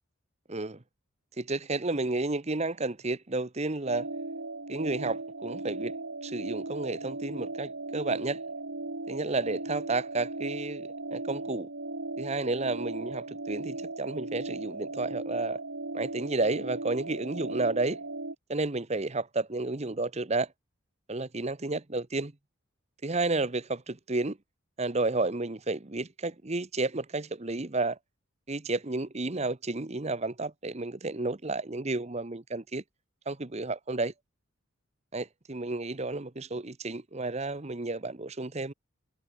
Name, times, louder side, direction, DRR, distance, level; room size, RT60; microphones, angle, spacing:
voice 1, 0.5-0.8 1.4-4.1 4.7-5.9 6.2-8.4 9.1-11.7 12.2-15.6 15.9-18.0 18.5-20.5 21.1-22.3 23.0-24.4 24.8-28.0 28.5-32.8 33.3-34.1 35.1-38.7, right 2 dB, 30° right, 0.9 m, -31 dB
sound 1, 3.8-18.3, right 2 dB, 65° right, 2.1 m, -37 dB
head